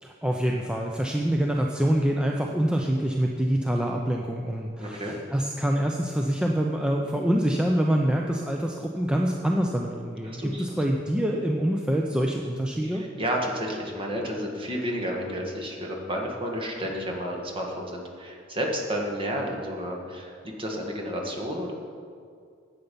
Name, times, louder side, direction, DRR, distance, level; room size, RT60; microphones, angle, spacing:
voice 1, 0.0-13.0, right 1 dB, 5° right, 0 dB, 0.5 m, -26 dB
voice 2, 4.8-5.1 10.2-10.6 12.8-21.7, equal, 30° right, 0 dB, 1.6 m, -31 dB
11.0 x 8.0 x 5.4 m, 2.2 s
head